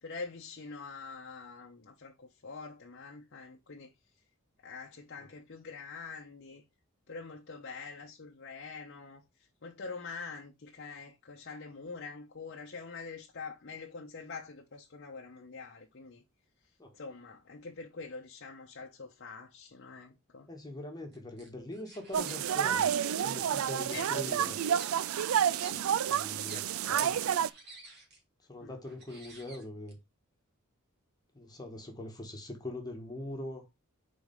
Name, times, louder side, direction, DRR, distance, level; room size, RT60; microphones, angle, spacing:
voice 1, 0.0-3.9 4.6-6.6 7.1-16.2 16.9-20.5 23.9-24.5 25.7-25.8 26.5-27.1 28.6-28.8, left 4 dB, 55° left, 0.8 m, -45 dB
voice 2, 20.5-22.9 23.2-24.6 26.1-26.6 26.9-27.1 28.5-30.0 31.3-33.6, left 1 dB, 20° left, 1.4 m, -42 dB
sound 1, 21.1-22.5 23.0-26.6 27.1-28.2 28.8-29.9, right 2 dB, 50° right, 2.5 m, -53 dB
sound 2, 22.1-27.5, right 9 dB, 70° right, 0.4 m, -29 dB
4.9 x 4.3 x 5.2 m
head